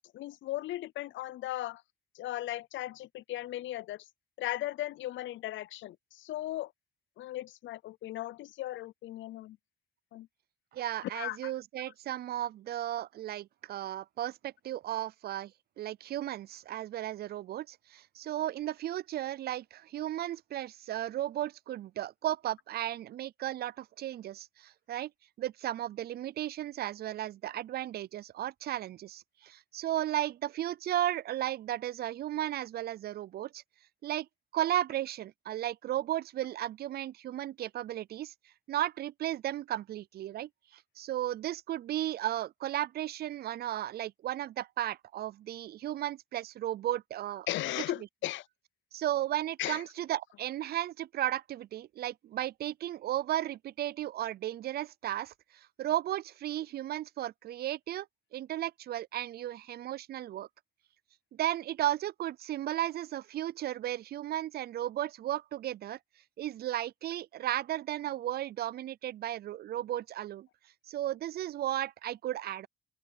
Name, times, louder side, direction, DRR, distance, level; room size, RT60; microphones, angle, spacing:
voice 1, 0.1-1.8 2.1-4.1 4.4-6.7 7.2-9.6 10.1-10.3 11.0-11.5 47.5-48.5 49.6-49.8, left 15 dB, 70° left, 0.5 m, -37 dB
voice 2, 10.7-15.5 15.8-25.1 25.4-33.6 34.0-34.3 34.5-38.3 38.7-47.5 48.9-58.1 58.3-60.5 61.3-66.0 66.4-70.5 70.9-72.7, right 13 dB, 55° right, 0.4 m, -35 dB
open air
cardioid pair, 90°, 20 cm